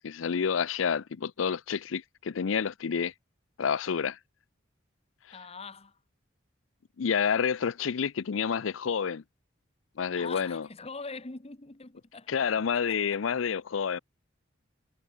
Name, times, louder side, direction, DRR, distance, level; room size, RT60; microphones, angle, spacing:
voice 1, 0.0-3.1 3.6-4.2 7.0-9.2 10.0-10.7 12.3-14.0, left 6 dB, 90° left, 0.5 m, -29 dB
voice 2, 5.3-6.0 10.2-12.3 12.7-13.0, left 4 dB, 30° left, 1.2 m, -43 dB
head